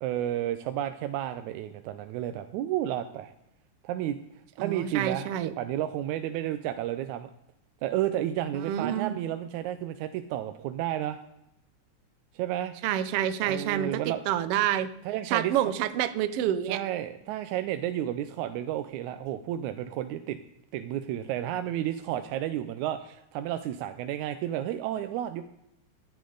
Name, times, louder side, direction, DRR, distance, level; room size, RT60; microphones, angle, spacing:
voice 1, 0.0-3.3 3.8-4.2 4.6-5.3 5.6-7.3 7.8-11.2 12.3-12.7 13.4-14.2 15.1-15.6 16.7-20.4 20.7-25.4, right 12 dB, 90° right, 9 dB, 2.0 m, -31 dB
voice 2, 4.6-5.5 8.7-9.2 12.8-14.0 14.3-14.9 15.2-16.8, right 11 dB, 75° right, 12 dB, 1.4 m, -28 dB
14.5 x 10.5 x 3.9 m, 0.84 s
omnidirectional pair, 3.3 m